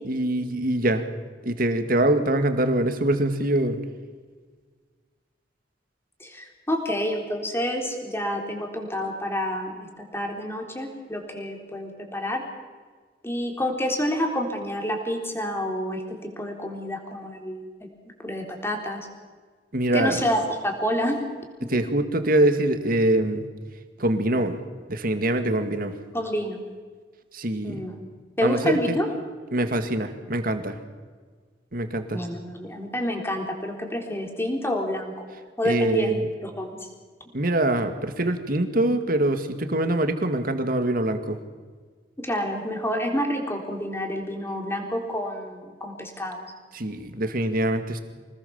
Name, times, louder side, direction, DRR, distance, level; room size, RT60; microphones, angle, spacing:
voice 1, 0.1-1.0 1.4-3.8 19.7-20.2 21.7-23.5 24.0-24.5 24.9-25.9 27.3-27.8 28.4-28.8 29.5-30.8 31.7-32.2 35.6-36.2 37.3-41.4 46.7-48.0, right 1 dB, 55° right, 8 dB, 2.1 m, -24 dB
voice 2, 6.2-12.4 13.2-17.7 18.2-19.0 19.9-21.2 21.6-21.8 26.1-26.6 27.6-28.0 28.4-29.1 32.1-35.3 35.6-36.9 42.2-46.5, equal, 15° left, 3 dB, 3.9 m, -28 dB
26.0 x 19.5 x 7.2 m, 1.5 s
head